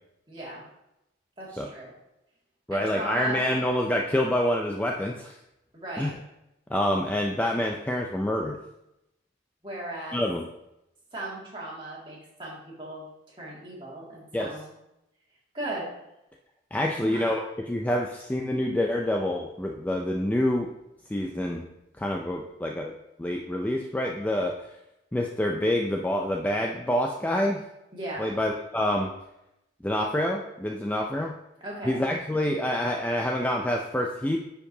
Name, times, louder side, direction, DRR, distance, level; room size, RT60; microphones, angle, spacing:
voice 1, 0.3-0.6 1.4-1.9 2.7-3.4 5.7-6.1 9.6-10.2 11.1-13.0 13.4-14.7 15.5-15.9 17.0-17.4 27.9-28.3 31.6-32.0, right 1 dB, 25° right, -6 dB, 2.0 m, -37 dB
voice 2, 2.7-5.3 6.0-6.1 6.7-8.6 10.1-10.5 14.3-14.5 16.7-20.7 21.1-21.7 22.0-22.9 23.2-24.5 25.1-27.6 28.2-29.1 29.8-31.4 31.8-34.4, left 1 dB, 10° left, 0 dB, 0.3 m, -27 dB
9.9 x 4.6 x 2.7 m, 0.88 s
head